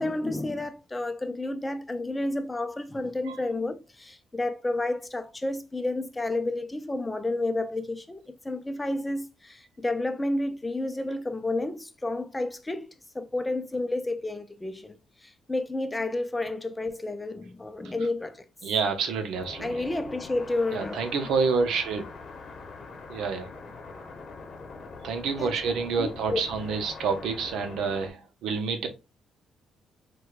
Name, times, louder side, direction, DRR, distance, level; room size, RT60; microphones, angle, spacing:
voice 1, 0.0-12.9 13.1-18.4 19.6-21.0 25.4-25.5 26.0-26.4, left 2 dB, 15° left, 0.4 m, -31 dB
voice 2, 18.6-19.7 20.7-22.0 23.1-23.5 25.0-28.9, right 5 dB, 80° right, 0.6 m, -28 dB
sound 1, 19.3-28.1, left 4 dB, 50° left, 0.8 m, -43 dB
4.5 x 2.2 x 2.4 m
cardioid pair, 90°, 0 cm